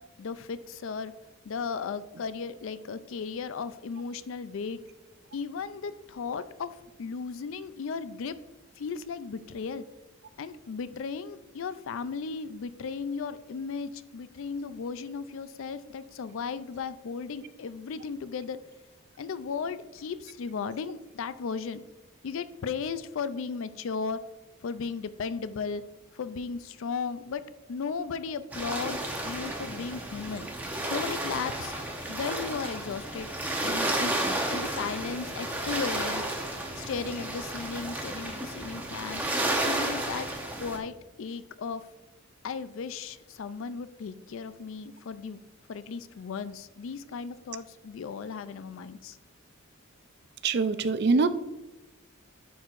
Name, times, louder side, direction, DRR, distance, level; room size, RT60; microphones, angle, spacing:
voice 1, 0.2-1.1 1.5-4.8 5.3-6.7 7.0-8.4 8.8-9.8 10.4-18.6 19.2-21.8 22.2-24.2 24.6-25.8 26.1-27.4 27.7-30.5 30.9-31.8 32.1-33.3 33.6-34.1 34.5-36.2 36.8-39.2 39.7-40.3 40.6-41.8 42.4-45.4 45.7-49.2, left 5 dB, 65° left, 14 dB, 0.4 m, -35 dB
sound 1, 28.5-40.8, right 1 dB, 10° right, 0.8 m, -32 dB
voice 2, 50.4-51.3, right 4 dB, 50° right, 12 dB, 0.4 m, -23 dB
9.9 x 4.6 x 2.5 m, 1.0 s
head